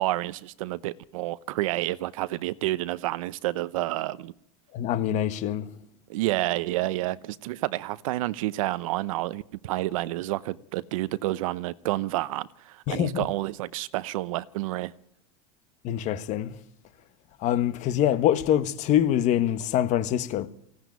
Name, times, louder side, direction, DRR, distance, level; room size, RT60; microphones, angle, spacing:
voice 1, 0.0-4.3 6.1-14.9, right 17 dB, 75° right, 0.9 m, -29 dB
voice 2, 4.7-5.7 12.9-13.3 15.8-16.6 17.4-20.5, left 11 dB, 45° left, 1.4 m, -25 dB
19.5 x 16.5 x 9.4 m
supercardioid pair, 135°, 17 cm